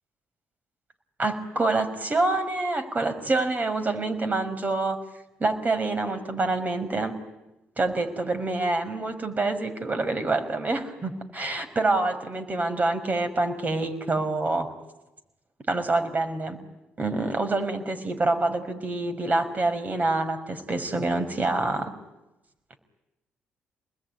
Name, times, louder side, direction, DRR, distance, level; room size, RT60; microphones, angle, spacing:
voice 1, 1.2-5.0 5.4-7.1 7.8-14.7 15.7-16.6 17.0-21.9, right 2 dB, 35° right, 8 dB, 5.6 m, -26 dB
28.5 x 21.0 x 9.7 m, 0.97 s
hypercardioid pair, 55°, 5 cm